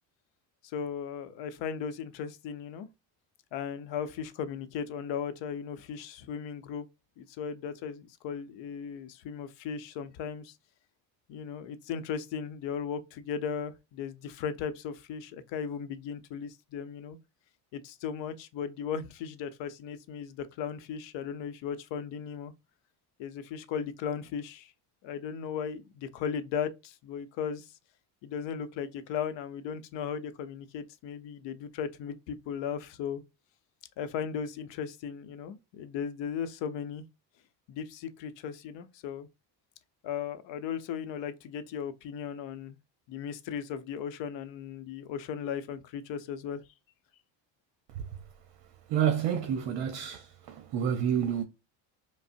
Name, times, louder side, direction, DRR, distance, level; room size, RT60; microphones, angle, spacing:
voice 1, 0.6-2.9 3.5-6.9 7.2-10.5 11.3-17.2 17.7-22.5 23.2-24.7 25.0-27.7 28.2-33.2 34.0-37.0 37.7-39.3 40.0-42.8 43.1-46.6, left 7 dB, 60° left, 0.7 m, -36 dB
voice 2, 48.9-51.4, right 9 dB, 60° right, 0.7 m, -29 dB
5.0 x 2.0 x 2.5 m
supercardioid pair, 85°, 49 cm